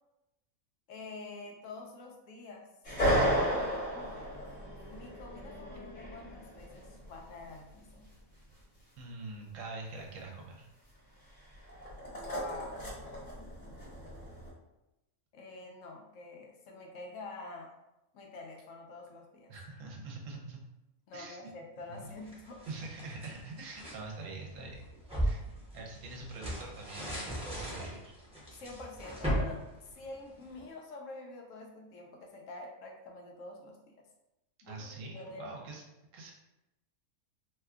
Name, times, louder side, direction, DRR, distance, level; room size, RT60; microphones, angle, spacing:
voice 1, 0.9-2.7 3.3-4.5 4.9-8.0 12.1-12.9 15.3-17.7 18.1-19.5 21.1-22.6 28.6-34.0 34.6-35.5, left 3 dB, 70° left, 0 dB, 0.9 m, -47 dB
sound 1, 2.8-7.5 11.5-14.5, equal, 35° left, 1.0 m, -34 dB
voice 2, 9.0-10.6 19.5-20.6 21.1-21.5 21.9-22.1 22.7-24.8 25.2-25.4 25.7-28.1 34.6-35.8 36.1-36.3, right 3 dB, 70° right, 0 dB, 1.0 m, -44 dB
sound 2, 22.0-24.0 24.5-30.6, equal, 5° right, 0.7 m, -37 dB
2.7 x 2.2 x 3.5 m, 0.94 s
omnidirectional pair, 1.5 m